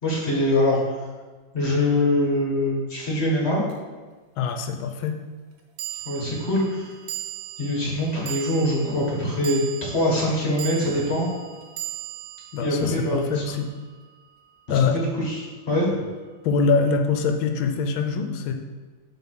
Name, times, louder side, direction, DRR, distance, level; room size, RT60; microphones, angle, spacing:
voice 1, 0.0-1.0 1.5-3.6 6.1-6.9 7.6-11.3 12.6-13.4 14.9-16.0, left 1 dB, 35° left, -3 dB, 1.8 m, -23 dB
sound 1, 3.7-3.8 5.8-14.2, right 13 dB, 85° right, 1.6 m, -38 dB
voice 2, 4.4-5.2 12.5-13.7 14.7-15.0 16.4-18.5, left 5 dB, 90° left, 5 dB, 1.5 m, -23 dB
7.3 x 3.9 x 5.9 m, 1.4 s
omnidirectional pair, 2.2 m